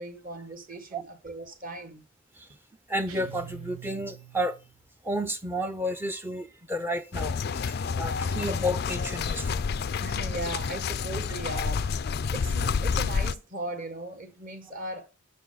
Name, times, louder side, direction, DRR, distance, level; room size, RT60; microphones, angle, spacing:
voice 1, 0.0-2.0 10.0-11.9 12.3-15.1, right 1 dB, 40° right, 1.6 m, -38 dB
voice 2, 2.9-4.5 5.0-9.6 12.2-12.3, equal, 10° right, 0.5 m, -31 dB
sound 1, 3.1-4.8, right 10 dB, 85° right, 1.0 m, -45 dB
sound 2, 7.1-13.3, left 5 dB, 45° left, 0.3 m, -29 dB
7.0 x 6.5 x 4.0 m
head